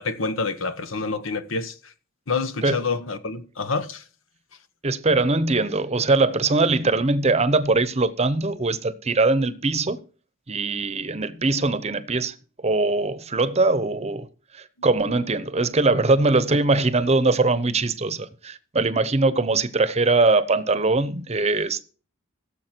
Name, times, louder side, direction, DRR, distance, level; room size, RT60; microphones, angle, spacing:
voice 1, 0.0-1.7 2.3-4.0 10.8-10.9, left 4 dB, 80° left, 1.2 m, -27 dB
voice 2, 4.8-10.0 10.5-14.3 14.5-21.8, right 3 dB, 35° right, 0.8 m, -21 dB
16.5 x 7.3 x 4.5 m
head